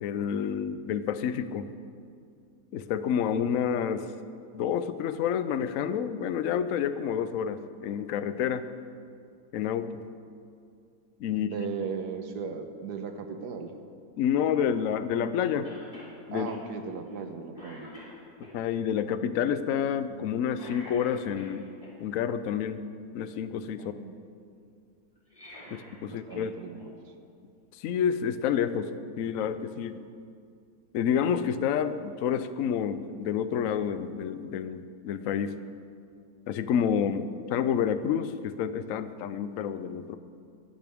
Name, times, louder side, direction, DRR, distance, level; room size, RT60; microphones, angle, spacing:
voice 1, 0.0-1.7 2.7-4.1 4.5-8.6 9.5-9.9 11.2-11.5 14.2-15.7 16.3-16.5 18.5-21.7 22.0-22.8 23.1-23.9 25.7-26.6 27.8-28.9 29.2-30.0 30.9-35.5 36.5-40.2, left 8 dB, 65° left, 12 dB, 0.9 m, -29 dB
voice 2, 11.3-13.7 16.3-17.9 23.8-24.2 25.8-26.9, right 5 dB, 80° right, 6 dB, 1.6 m, -37 dB
Cough, 15.6-16.1 16.5-16.6 17.1-17.3 17.5-18.5 20.5-21.9 25.2-26.5 26.8-26.9 28.0-28.1, left 1 dB, 30° left, 4.3 m, -47 dB
23.0 x 11.0 x 3.6 m, 2.4 s
omnidirectional pair, 1.7 m